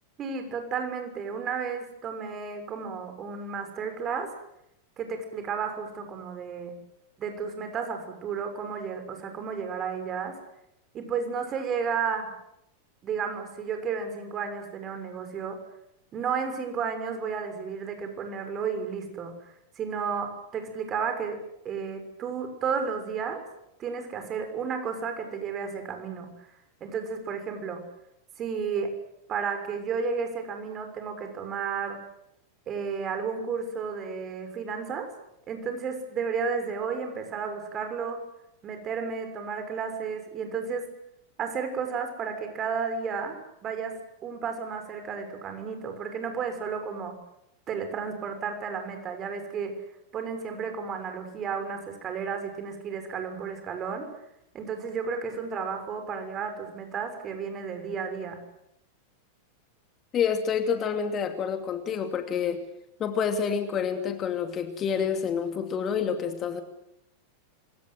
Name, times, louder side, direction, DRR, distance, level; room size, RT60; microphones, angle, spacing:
voice 1, 0.2-4.3 5.0-6.8 7.2-10.4 10.9-12.3 13.0-15.6 16.1-21.4 21.6-23.4 23.8-26.3 26.8-27.8 28.4-29.0 29.3-32.0 32.7-35.1 35.5-38.2 38.6-40.9 41.4-47.2 47.7-49.8 50.1-54.1 54.5-58.4, right 6 dB, 30° right, 7 dB, 6.3 m, -32 dB
voice 2, 60.1-62.6 63.0-66.6, left 7 dB, 30° left, 7 dB, 2.6 m, -28 dB
27.0 x 24.0 x 8.0 m, 0.81 s
figure-of-eight pair, 90°, 0 cm